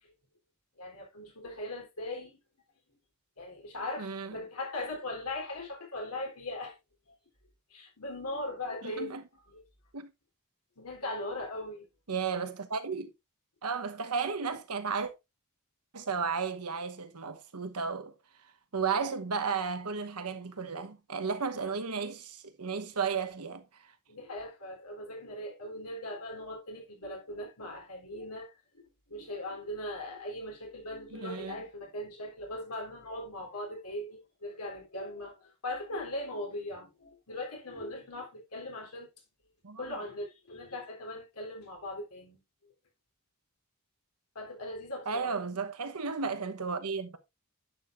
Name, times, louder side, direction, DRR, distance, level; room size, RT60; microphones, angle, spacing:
voice 1, 0.8-2.4 3.4-6.7 7.7-9.1 9.5-9.6 10.8-11.9 24.1-39.1 39.8-42.4 44.4-45.3, left 1 dB, 90° left, 3.6 m, -39 dB
voice 2, 4.0-4.4 8.8-9.2 9.9-10.1 12.1-13.1 13.6-15.1 15.9-18.1 18.7-23.6 31.1-31.6 39.6-40.0 45.1-47.2, right 5 dB, 90° right, 1.1 m, -34 dB
10.0 x 6.8 x 2.6 m
head